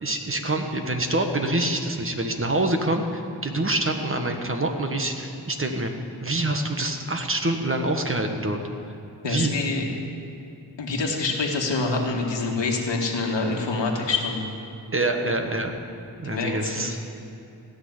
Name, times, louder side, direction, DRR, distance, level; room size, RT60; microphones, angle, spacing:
voice 1, 0.0-5.9 6.2-8.6 9.2-9.5 14.9-15.7 16.2-16.9, right 2 dB, 30° right, 4 dB, 1.4 m, -26 dB
voice 2, 9.2-9.9 10.8-14.5 16.2-17.0, left 3 dB, 80° left, 0 dB, 2.0 m, -26 dB
16.0 x 6.6 x 9.6 m, 2.8 s
wide cardioid pair, 80°, 44 cm